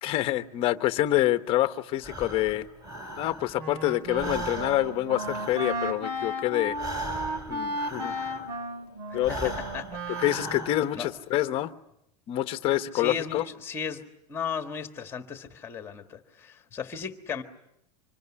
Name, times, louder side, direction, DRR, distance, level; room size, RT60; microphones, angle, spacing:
voice 1, 0.0-2.7 3.2-6.8 7.5-8.1 9.1-9.5 10.1-11.7 12.3-13.5, left 14 dB, 25° left, 10 dB, 1.0 m, -27 dB
Breathing, 2.0-3.7 4.0-8.6 9.1-11.0, right 1 dB, 15° right, 6.3 m, -38 dB
Wind instrument woodwind instrument, 3.6-10.9, right 1 dB, 90° right, 3.4 m, -34 dB
voice 2, 9.3-10.2 10.9-11.1 12.9-14.0 14.3-17.4, left 6 dB, 10° left, 7 dB, 1.6 m, -36 dB
26.0 x 21.5 x 9.9 m, 0.78 s
supercardioid pair, 170°, 21 cm